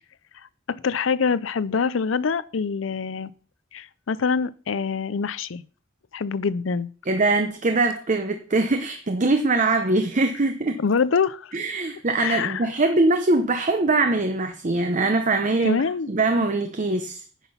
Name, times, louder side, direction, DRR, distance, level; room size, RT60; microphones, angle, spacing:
voice 1, 0.7-3.3 3.7-5.6 6.1-6.9 10.8-11.5 12.2-12.7 15.6-16.1, left 5 dB, 75° left, 0.5 m, -25 dB
voice 2, 7.1-10.8 11.5-17.2, right 2 dB, 40° right, 0.8 m, -22 dB
10.0 x 6.0 x 5.6 m
head